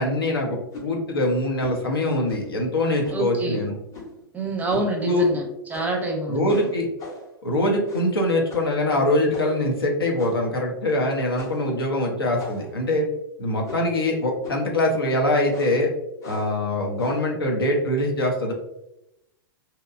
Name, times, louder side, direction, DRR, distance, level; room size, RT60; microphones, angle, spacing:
voice 1, 0.0-3.7 5.0-5.2 6.3-6.9 7.4-13.0 13.4-15.9 16.3-18.5, left 1 dB, 85° left, 0 dB, 0.6 m, -23 dB
sound 1, 0.7-0.9 1.6-1.8 2.3-2.6 3.0-3.2 3.9-4.2 4.7-4.9 5.2-5.3 5.7-6.1 6.5-7.3 7.8-8.2 8.5-8.7 9.3-9.6 10.2-10.6 11.3-11.7 12.4-12.8 13.6-14.0 14.4-14.7 15.5-15.8 16.2-16.6 17.0-17.3, left 1 dB, 25° left, 0.7 m, -39 dB
voice 2, 3.1-3.6 4.3-5.4 5.7-6.5, right 2 dB, 15° right, 1 dB, 0.5 m, -26 dB
2.7 x 2.2 x 2.4 m, 0.87 s
figure-of-eight pair, 105°, 12 cm